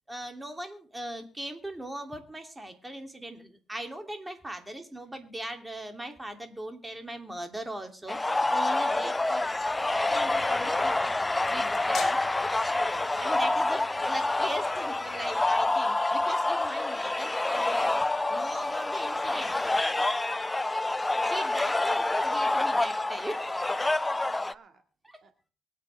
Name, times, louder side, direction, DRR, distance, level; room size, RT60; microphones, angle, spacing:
voice 1, 0.1-9.5 9.9-11.2 11.4-12.2 13.2-19.5 21.3-23.6 25.1-25.2, right 1 dB, 10° right, 5 dB, 2.9 m, -40 dB
sound 1, 8.1-24.5, left 2 dB, 15° left, 0.5 m, -27 dB
voice 2, 8.9-9.3 13.1-13.3 19.0-19.3 21.8-22.5 24.2-24.8 25.2-25.5, right 6 dB, 55° right, 6 dB, 1.9 m, -54 dB
sound 2, 10.0-15.7, left 5 dB, 50° left, 5.0 m, -45 dB
24.5 x 8.3 x 3.5 m, 0.39 s
cardioid pair, 90°, 0 cm